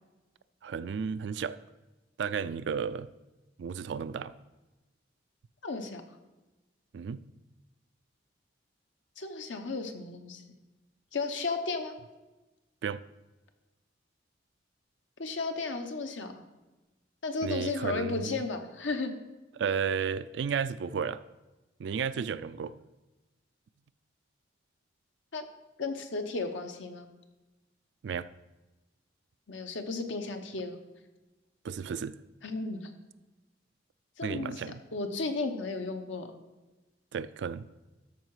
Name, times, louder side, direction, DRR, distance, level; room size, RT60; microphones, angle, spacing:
voice 1, 0.6-1.6 2.2-3.1 3.6-4.3 6.9-7.3 12.8-13.0 17.4-18.4 19.6-21.2 21.8-22.7 28.0-28.3 31.6-32.2 34.2-34.8 37.1-37.7, right 6 dB, 65° right, 15 dB, 0.3 m, -33 dB
voice 2, 5.6-6.0 9.2-10.4 11.1-11.9 15.2-16.4 17.2-19.1 25.3-25.4 25.8-27.1 29.5-30.8 32.4-32.9 34.2-34.6 34.9-36.3, left 3 dB, 80° left, 6 dB, 1.0 m, -34 dB
13.0 x 4.8 x 4.8 m, 1.1 s
head